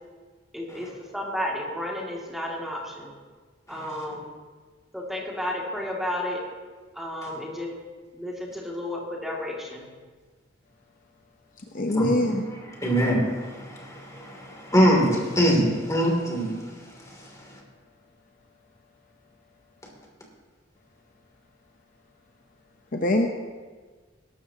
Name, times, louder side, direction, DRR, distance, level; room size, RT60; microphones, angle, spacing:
voice 1, 0.5-3.1 3.7-4.3 4.9-6.4 6.9-7.7 8.1-9.8, left 1 dB, ahead, -3 dB, 2.4 m, -32 dB
voice 2, 3.7-4.2 7.2-7.3 11.9-16.6 17.0-17.2, equal, 15° left, -1 dB, 2.9 m, -24 dB
voice 3, 11.7-12.4 22.9-23.3, left 1 dB, 45° left, 3 dB, 0.9 m, -23 dB
20.5 x 12.5 x 2.9 m, 1.4 s
head